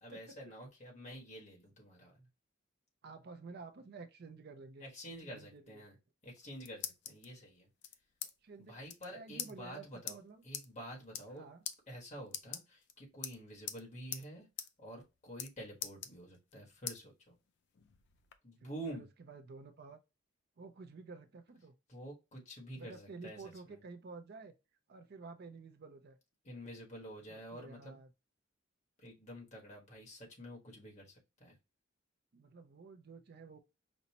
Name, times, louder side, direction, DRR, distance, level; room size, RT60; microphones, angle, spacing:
voice 1, 0.0-2.3 4.8-6.0 6.2-7.7 8.6-10.2 10.4-11.4 11.9-14.5 14.8-17.3 18.4-19.1 21.9-23.8 26.4-28.0 29.0-31.6, right 1 dB, 35° left, 1.3 m, -49 dB
voice 2, 3.0-4.9 5.2-5.8 8.4-8.8 9.1-10.4 11.3-11.6 18.6-20.0 20.6-21.7 22.7-24.5 24.9-26.2 27.3-28.1 32.3-33.6, right 4 dB, 50° right, 0.4 m, -51 dB
sound 1, 6.2-7.3 7.8-8.3 8.6-8.7 8.9-9.1 9.4-9.5 10.1-10.2 10.5-10.7 11.0-11.4 11.7-11.8 12.3-12.9 13.2-13.8 14.1-14.3 14.6-14.7 15.0-15.5 15.8-16.5 16.9-17.0 17.5-18.4, left 10 dB, 60° left, 0.4 m, -42 dB
5.2 x 2.0 x 2.8 m
head